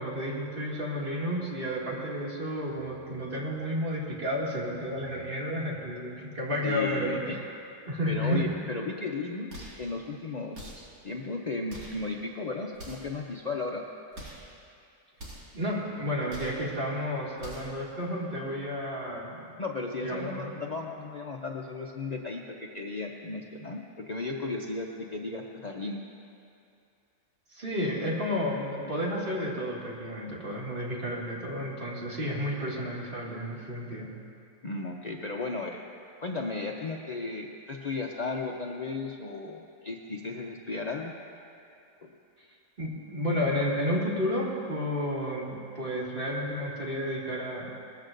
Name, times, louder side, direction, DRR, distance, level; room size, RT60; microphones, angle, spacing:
voice 1, 0.0-7.4 7.9-8.5 15.5-19.5 20.0-20.5 27.5-34.1 42.8-47.7, equal, 35° right, -6 dB, 2.4 m, -31 dB
voice 2, 6.6-7.4 8.1-13.8 19.6-26.0 34.6-35.9 36.2-41.1 42.0-42.1, left 3 dB, 75° left, 0 dB, 0.4 m, -35 dB
sound 1, 9.5-9.9 10.5-11.0 11.7-12.1 12.7-13.2 14.1-14.5 15.2-15.6 16.3-16.7 17.4-17.8, equal, 85° right, 2.8 m, -44 dB
20.0 x 14.0 x 2.6 m, 2.5 s
omnidirectional pair, 1.7 m